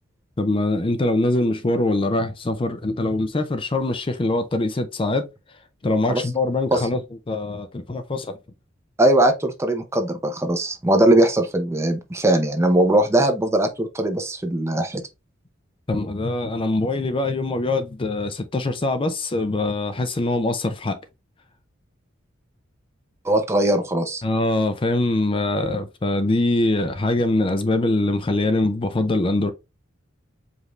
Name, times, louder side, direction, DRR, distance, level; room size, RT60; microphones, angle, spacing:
voice 1, 0.4-5.3 5.8-7.0 7.3-8.4 15.9-21.0 24.2-29.5, left 2 dB, 25° left, 0.5 m, -23 dB
voice 2, 9.0-15.0 23.2-24.2, right 1 dB, 15° right, 0.7 m, -20 dB
5.1 x 2.6 x 3.0 m
head